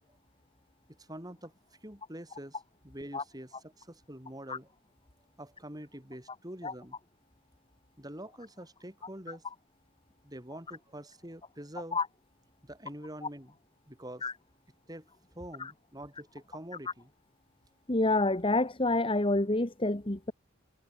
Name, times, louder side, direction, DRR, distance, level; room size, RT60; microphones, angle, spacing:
voice 1, 1.0-1.5 1.8-4.7 5.4-7.0 8.0-9.4 10.2-12.0 12.6-13.6 13.9-14.3 14.9-15.1 15.3-17.1, right 1 dB, 20° right, 6.2 m, -45 dB
voice 2, 17.9-20.3, left 2 dB, 25° left, 1.6 m, -28 dB
head